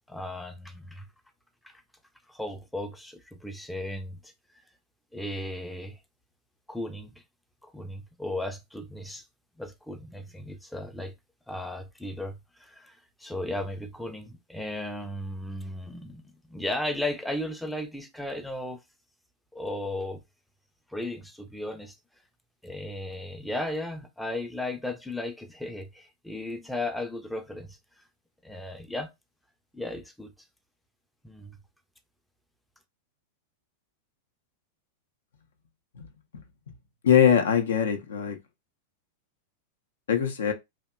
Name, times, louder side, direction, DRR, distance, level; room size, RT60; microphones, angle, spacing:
voice 1, 0.1-1.1 1.6-1.8 2.3-4.3 5.1-6.0 6.7-7.2 7.6-9.2 9.6-11.1 11.5-18.8 19.5-20.2 20.9-22.0 22.6-27.8 28.4-29.1 29.7-30.3 31.2-31.6, left 1 dB, ahead, 0.4 m, -35 dB
voice 2, 37.0-38.4 40.1-40.5, left 8 dB, 65° left, 0.4 m, -22 dB
2.7 x 2.1 x 2.2 m
figure-of-eight pair, 90°, 0 cm